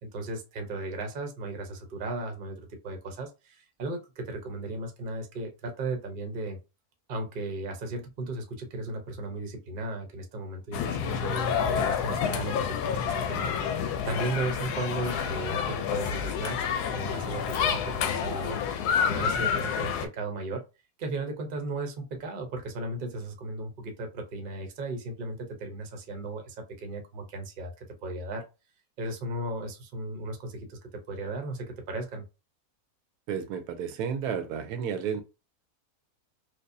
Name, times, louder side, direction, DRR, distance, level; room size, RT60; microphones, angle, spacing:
voice 1, 0.0-6.6 7.1-13.5 14.0-18.6 19.1-20.6 21.0-28.4 29.0-30.8 31.1-32.2, right 2 dB, 45° right, 0.7 m, -36 dB
sound 1, 10.7-20.1, left 7 dB, 90° left, 1.1 m, -29 dB
voice 2, 33.3-35.2, right 7 dB, 85° right, 1.1 m, -32 dB
4.6 x 2.3 x 2.6 m
omnidirectional pair, 1.6 m